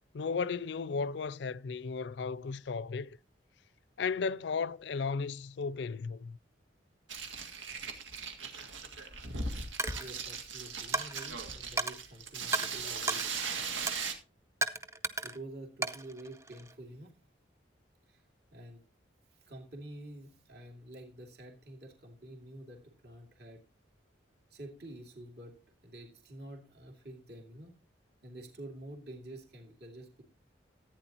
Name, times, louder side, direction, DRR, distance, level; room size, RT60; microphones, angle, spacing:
voice 1, 0.1-3.2 4.0-6.4, left 5 dB, 65° left, 0.4 m, -35 dB
sound 1, 7.1-14.1, right 5 dB, 85° right, 2.0 m, -38 dB
Coin (dropping), 9.8-10.1 10.9-11.3 11.8-12.0 12.5-12.7 13.1-13.3 13.9-14.1 14.6-15.4 15.8-16.7, right 2 dB, 15° right, 0.6 m, -34 dB
voice 2, 9.9-13.3 15.2-17.1 18.1-18.2 18.5-18.8 19.3-23.6 24.5-25.6 25.8-27.7 28.2-30.2, right 1 dB, 55° right, 2.5 m, -48 dB
15.0 x 9.2 x 2.9 m
head